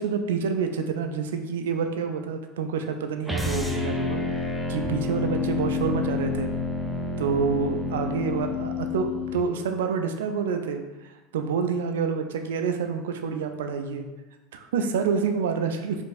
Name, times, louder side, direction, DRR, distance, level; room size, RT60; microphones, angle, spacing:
voice 1, 0.0-4.2 4.7-6.5 7.2-14.1 14.5-16.0, right 6 dB, 70° right, 6 dB, 0.3 m, -28 dB
sound 1, 3.2-9.4, left 3 dB, 5° right, 0.4 m, -29 dB
4.6 x 2.5 x 2.4 m, 1.1 s
figure-of-eight pair, 80°, 0 cm